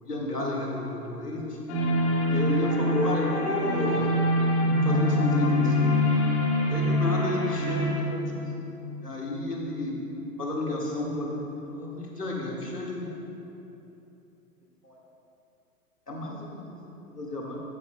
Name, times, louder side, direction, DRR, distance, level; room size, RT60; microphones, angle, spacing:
voice 1, 0.0-1.6 2.3-4.1 4.8-6.0 6.6-8.7 9.0-9.9 10.4-13.2 14.8-15.0 16.1-16.8 17.1-17.6, left 1 dB, 85° left, -3 dB, 1.9 m, -31 dB
sound 1, 1.7-7.9, left 1 dB, 45° left, 1.9 m, -24 dB
14.0 x 9.8 x 2.2 m, 2.8 s
figure-of-eight pair, 105°, 46 cm